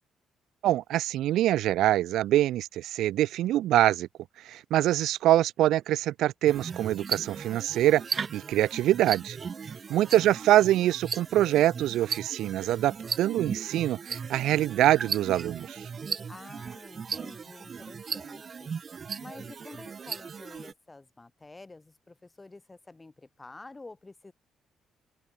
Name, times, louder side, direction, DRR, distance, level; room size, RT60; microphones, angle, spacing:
voice 1, 0.6-4.1 4.5-8.0 8.3-9.4 9.9-15.8, right 13 dB, 80° right, 0.6 m, -24 dB
sound 1, 6.5-20.7, right 6 dB, 40° right, 2.3 m, -37 dB
voice 2, 9.9-10.7 16.3-18.7 19.2-24.3, left 3 dB, 20° left, 6.5 m, -49 dB
open air
cardioid pair, 95°, 0 cm